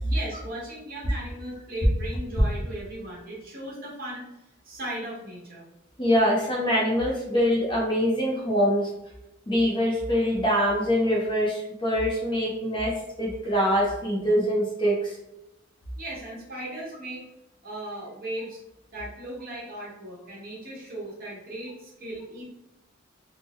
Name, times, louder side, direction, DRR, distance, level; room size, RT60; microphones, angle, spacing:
voice 1, 0.0-5.7 16.0-17.2 17.6-18.6 18.9-22.4, right 1 dB, 50° right, -5 dB, 1.3 m, -37 dB
voice 2, 6.0-8.9 9.5-12.9 13.2-15.1, equal, 25° left, -3 dB, 0.7 m, -24 dB
3.6 x 2.1 x 3.1 m, 0.89 s
head